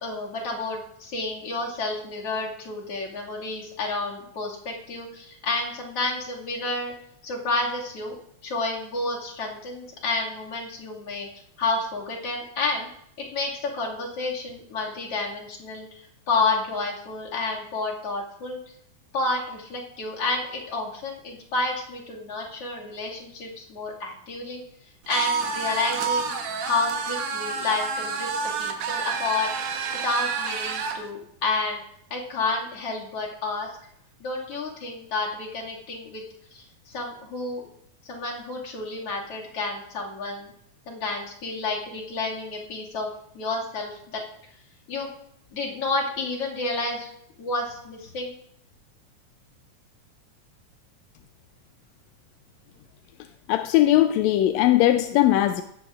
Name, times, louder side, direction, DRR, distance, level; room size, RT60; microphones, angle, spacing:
voice 1, 0.0-6.9 7.2-8.1 8.4-11.3 11.6-12.9 13.2-15.9 16.3-18.6 19.1-24.6 25.1-26.3 26.6-28.3 28.6-29.5 30.0-31.8 32.1-33.7 34.2-36.2 36.5-37.6 38.0-40.5 40.9-43.1 43.3-44.2 44.9-45.1 45.5-47.1 47.4-48.3, left 3 dB, 50° left, -3 dB, 3.0 m, -30 dB
sound 1, 25.1-31.0, right 5 dB, 85° right, 2.7 m, -29 dB
voice 2, 53.5-55.6, left 14 dB, 80° left, 8 dB, 1.6 m, -19 dB
16.5 x 13.5 x 2.4 m, 0.73 s
omnidirectional pair, 3.5 m